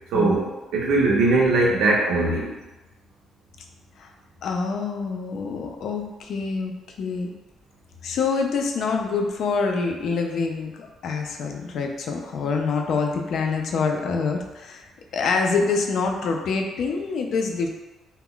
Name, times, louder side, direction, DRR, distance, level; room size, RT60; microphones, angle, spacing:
voice 1, 0.1-2.5, right 2 dB, 80° right, -3 dB, 0.5 m, -20 dB
voice 2, 4.4-6.7 7.0-7.3 8.0-14.8 15.1-17.7, left 4 dB, 55° left, 2 dB, 0.3 m, -26 dB
2.2 x 2.1 x 3.6 m, 1.1 s
cardioid pair, 165°, 0 cm